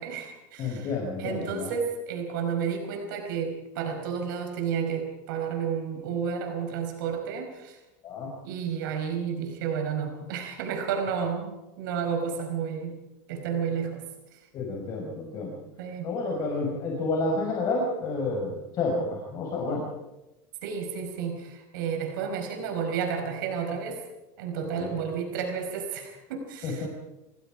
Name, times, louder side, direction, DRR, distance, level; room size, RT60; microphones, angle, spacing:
voice 1, 0.0-0.9 1.2-7.8 8.4-13.0 13.3-14.0 14.3-14.4 15.8-16.1 20.6-24.0 24.4-26.9, right 7 dB, 80° right, 4 dB, 5.0 m, -31 dB
voice 2, 0.6-1.7 8.0-8.3 14.5-15.6 16.0-19.9 24.5-25.0 26.6-26.9, left 3 dB, 35° left, -1 dB, 5.2 m, -30 dB
27.5 x 20.0 x 5.0 m, 0.97 s
supercardioid pair, 165°, 11 cm